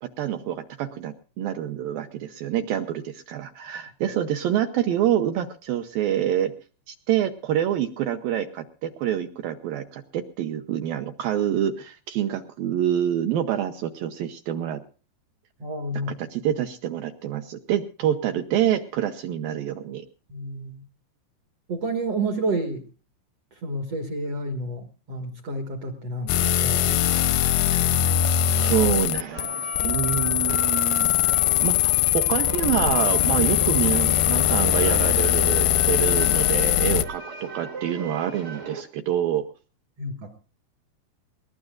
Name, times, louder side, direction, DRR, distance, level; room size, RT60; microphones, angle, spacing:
voice 1, 0.0-6.5 6.9-14.8 16.2-20.0 27.7-27.9 28.6-39.5, right 10 dB, 75° right, 7 dB, 2.2 m, -27 dB
voice 2, 15.6-16.1 20.3-20.8 21.7-22.8 23.6-27.0 40.0-40.4, right 2 dB, 55° right, 5 dB, 1.7 m, -30 dB
sound 1, 26.3-37.1, left 12 dB, 80° left, 2.2 m, -21 dB
sound 2, 29.1-38.8, right 3 dB, 40° right, 0.9 m, -37 dB
21.0 x 19.5 x 2.4 m, 0.37 s
omnidirectional pair, 5.2 m